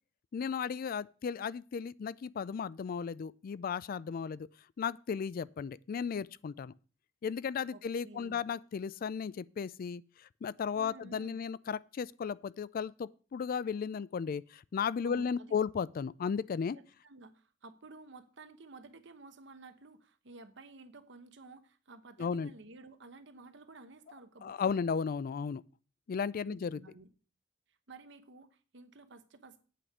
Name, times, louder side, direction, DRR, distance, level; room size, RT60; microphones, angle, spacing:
voice 1, 0.3-4.5 4.8-6.7 7.2-10.0 10.4-16.8 22.2-22.5 24.4-25.6 26.1-26.8, left 6 dB, 50° left, 0.3 m, -35 dB
voice 2, 7.7-8.4 10.7-11.4 15.0-15.6 16.7-24.8 26.5-27.1 27.7-29.6, right 3 dB, 70° right, 1.0 m, -53 dB
8.5 x 5.1 x 7.2 m
head